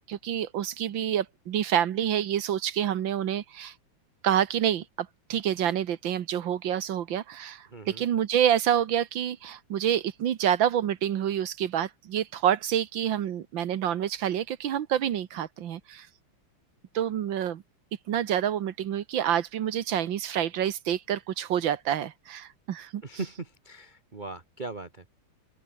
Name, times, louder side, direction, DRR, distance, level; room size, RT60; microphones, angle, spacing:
voice 1, 0.1-3.7 4.2-16.1 17.0-17.6 18.1-23.0, right 10 dB, 65° right, 1.7 m, -27 dB
voice 2, 7.7-8.0 23.0-25.1, right 3 dB, 25° right, 1.4 m, -39 dB
open air
omnidirectional pair, 2.4 m